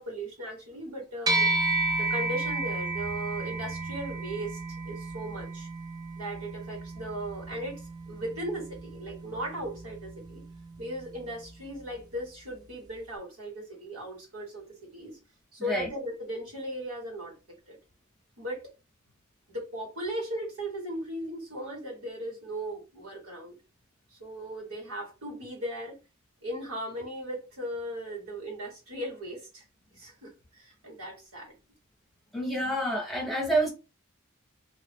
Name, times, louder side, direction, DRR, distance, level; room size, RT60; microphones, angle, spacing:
voice 1, 0.0-1.5 2.0-5.7 6.1-10.4 10.8-15.2 15.5-17.3 17.7-17.8 18.4-18.7 19.5-23.5 24.1-26.0 26.4-29.6 29.9-31.5, right 1 dB, 85° right, 1.6 m, -37 dB
sound 1, 1.3-10.9, right 2 dB, 20° right, 0.4 m, -32 dB
voice 2, 32.3-33.7, right 1 dB, ahead, 0.9 m, -28 dB
2.7 x 2.4 x 3.4 m
head